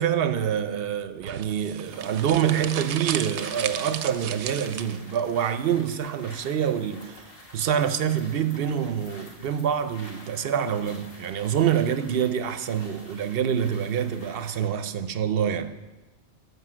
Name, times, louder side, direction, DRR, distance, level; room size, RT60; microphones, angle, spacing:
voice 1, 0.0-7.3 7.5-15.7, right 9 dB, 65° right, 0.8 m, -26 dB
sound 1, 1.2-5.2, right 9 dB, 90° right, 0.9 m, -34 dB
sound 2, 1.8-14.8, left 1 dB, 55° left, 1.8 m, -49 dB
13.0 x 5.5 x 6.1 m
omnidirectional pair, 1.1 m